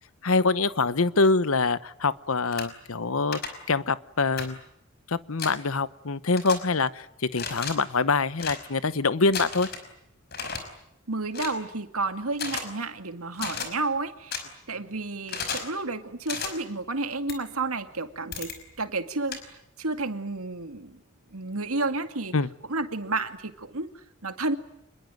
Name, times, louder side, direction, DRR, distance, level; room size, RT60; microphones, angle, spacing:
voice 1, 0.2-3.4 3.7-4.6 5.1-9.7 22.3-22.5, left 3 dB, 75° left, 16 dB, 1.0 m, -25 dB
sound 1, 2.5-2.6 3.3-3.5 4.4-4.5 5.4-5.5 6.3-6.6 7.3-7.7 8.4-8.6 9.3-9.8 10.3-10.6 11.3-11.6 12.3-12.6 13.3-13.7 14.3-14.4 15.3-15.7 16.3-16.5 17.3-17.4 18.3-18.6 19.3-19.4, left 6 dB, 45° left, 5.3 m, -33 dB
voice 2, 11.1-21.0 21.3-22.3 22.7-23.9 24.2-24.6, right 3 dB, 90° right, 9 dB, 2.3 m, -31 dB
27.0 x 21.5 x 9.2 m, 0.79 s
head